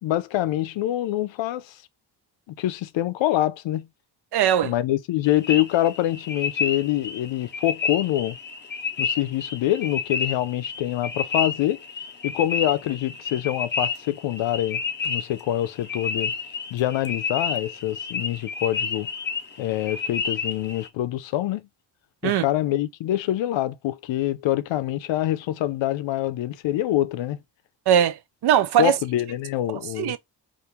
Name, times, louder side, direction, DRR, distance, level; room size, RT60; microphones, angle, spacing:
voice 1, 0.0-1.8 2.5-3.9 4.6-8.4 9.0-11.8 12.2-16.3 16.7-19.1 19.6-21.7 22.2-27.4 28.8-30.2, left 13 dB, 85° left, 0.5 m, -25 dB
voice 2, 4.3-4.7 22.2-22.4 27.9-29.0 30.0-30.2, right 10 dB, 65° right, 0.5 m, -20 dB
sound 1, 5.2-20.9, left 5 dB, 25° left, 0.5 m, -30 dB
2.9 x 2.6 x 3.3 m
wide cardioid pair, 145°, 44 cm